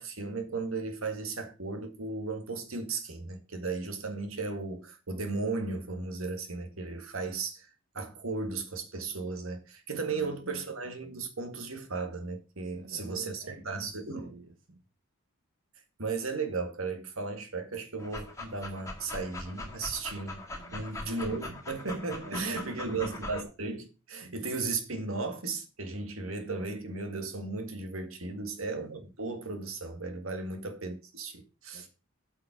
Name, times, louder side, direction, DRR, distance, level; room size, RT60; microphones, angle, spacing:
voice 1, 0.0-7.7 7.9-14.4 16.0-20.4 20.7-31.9, right 3 dB, 80° right, 2.0 m, -35 dB
voice 2, 10.0-10.7 12.6-14.8 20.5-21.6 22.2-23.1 24.2-24.4 28.3-28.6 30.3-30.6 31.7-31.9, right 2 dB, 65° right, 1.3 m, -48 dB
Dog, 18.0-23.4, left 2 dB, 15° left, 2.1 m, -42 dB
8.9 x 5.7 x 5.9 m
head